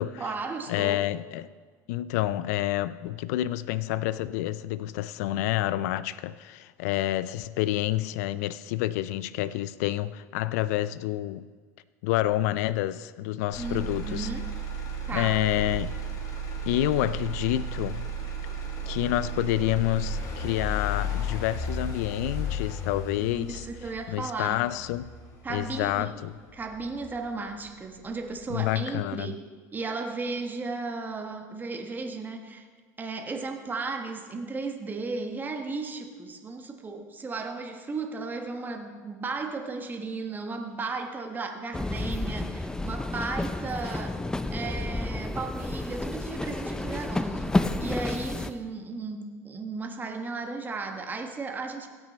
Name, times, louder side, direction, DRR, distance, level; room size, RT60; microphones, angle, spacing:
voice 1, 0.2-1.0 13.6-14.4 15.1-15.4 23.2-24.6 25.4-26.2 26.5-29.4 29.7-32.7 33.0-44.2 44.5-51.9, right 3 dB, 20° right, 1.3 m, -35 dB
voice 2, 0.7-1.5 1.9-11.5 12.0-14.3 15.1-16.0 16.7-18.1 18.9-23.7 24.1-25.1 25.5-26.3 28.5-29.3, left 14 dB, 70° left, 0.4 m, -28 dB
Motor vehicle (road), 13.5-27.5 28.0-28.5, right 1 dB, 45° left, 2.7 m, -34 dB
sound 1, 41.7-48.5, left 2 dB, 10° left, 0.6 m, -30 dB
16.5 x 6.2 x 4.3 m
hypercardioid pair, 95°, 9 cm